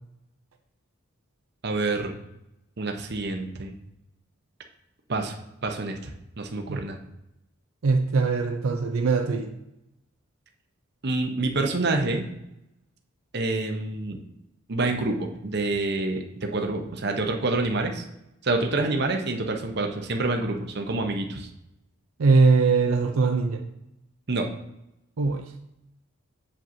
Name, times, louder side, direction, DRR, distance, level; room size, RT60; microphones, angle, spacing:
voice 1, 1.6-2.2 2.8-3.7 5.1-5.3 5.6-6.1 6.4-7.0 11.0-12.3 13.3-14.2 14.7-18.0 18.4-21.5 24.3-24.5, right 2 dB, 55° right, 4 dB, 0.8 m, -27 dB
voice 2, 7.8-9.5 22.2-23.6 25.2-25.5, right 4 dB, 80° right, 4 dB, 0.5 m, -21 dB
7.6 x 7.2 x 2.7 m, 0.87 s
head